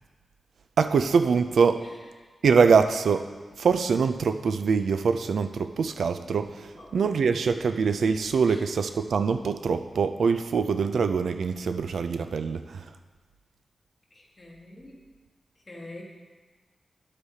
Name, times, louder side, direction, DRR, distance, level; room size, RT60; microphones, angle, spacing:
voice 1, 0.8-1.8 2.4-3.3 3.6-12.9, right 5 dB, 80° right, 9 dB, 0.4 m, -24 dB
voice 2, 6.7-7.1 8.4-8.6 14.1-15.0 15.7-16.0, left 2 dB, 25° left, -2 dB, 1.5 m, -45 dB
12.0 x 8.0 x 2.8 m, 1.4 s
wide cardioid pair, 170°, 0 cm